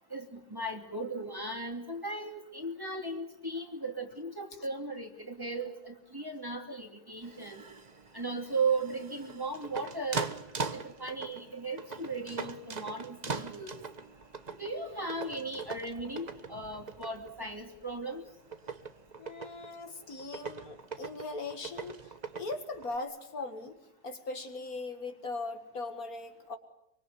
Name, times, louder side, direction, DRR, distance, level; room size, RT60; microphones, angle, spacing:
voice 1, 0.1-7.6 8.1-10.3 10.7-13.7 14.6-18.2, right 3 dB, 15° right, 3 dB, 2.7 m, -36 dB
sound 1, 7.2-23.0, right 4 dB, 30° right, 1.2 m, -42 dB
voice 2, 19.2-23.8 24.0-26.6, left 3 dB, 65° left, 7 dB, 2.2 m, -40 dB
24.5 x 23.5 x 9.5 m, 0.79 s
omnidirectional pair, 1.7 m